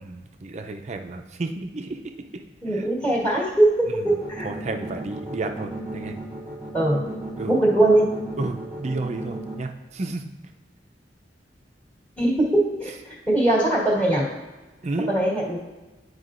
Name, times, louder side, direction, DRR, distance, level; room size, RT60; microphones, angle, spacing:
voice 1, 0.0-2.9 3.9-4.2 4.4-6.2 7.4-7.5 8.4-10.3 14.8-15.1, right 2 dB, 40° right, 5 dB, 0.5 m, -32 dB
voice 2, 2.6-3.7 4.0-4.5 6.7-7.0 7.5-8.1 12.2-14.3 15.1-15.6, right 1 dB, 10° left, -8 dB, 1.5 m, -21 dB
sound 1, 4.0-9.5, right 2 dB, 10° right, 0.9 m, -35 dB
9.5 x 4.8 x 2.5 m, 1.2 s
head